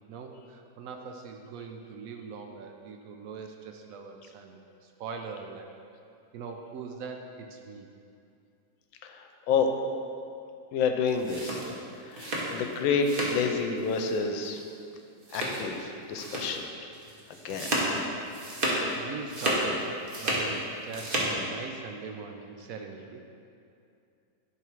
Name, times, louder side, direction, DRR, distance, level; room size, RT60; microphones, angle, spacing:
voice 1, 0.1-5.7 6.3-7.9 18.9-23.2, right 5 dB, 75° right, 3 dB, 0.7 m, -41 dB
voice 2, 9.0-9.7 10.7-11.7 12.0-14.6 15.3-16.6 17.4-17.7, left 5 dB, 90° left, 5 dB, 1.4 m, -29 dB
sound 1, 11.1-13.5 13.8-14.2 14.4-14.6 15.2-15.8 16.2-16.6 16.9-18.9 19.2-20.5 20.8-21.3, right 1 dB, 35° right, 1.1 m, -31 dB
10.5 x 3.7 x 4.5 m, 2.5 s
omnidirectional pair, 2.1 m